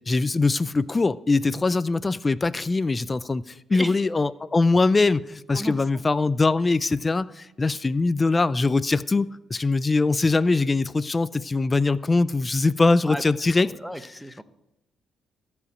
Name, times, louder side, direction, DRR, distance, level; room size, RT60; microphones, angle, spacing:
voice 1, 0.1-13.7, left 3 dB, 25° left, 0.4 m, -22 dB
voice 2, 13.6-14.4, equal, ahead, 0.7 m, -33 dB
14.0 x 5.0 x 8.3 m
cardioid pair, 90°, 0 cm